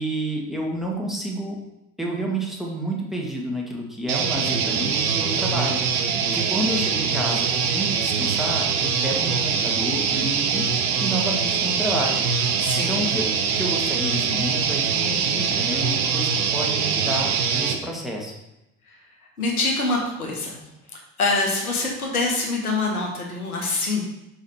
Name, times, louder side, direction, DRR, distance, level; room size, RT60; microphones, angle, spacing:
voice 1, 0.0-1.6 2.0-10.7 11.0-12.2 12.9-18.3, right 1 dB, ahead, -2 dB, 1.6 m, -30 dB
sound 1, 4.1-17.8, right 6 dB, 80° right, 0.6 m, -23 dB
voice 2, 12.6-13.0 19.4-20.6 21.2-24.0, left 3 dB, 85° left, -1 dB, 1.0 m, -25 dB
5.7 x 4.9 x 4.6 m, 0.92 s
figure-of-eight pair, 50°, 43 cm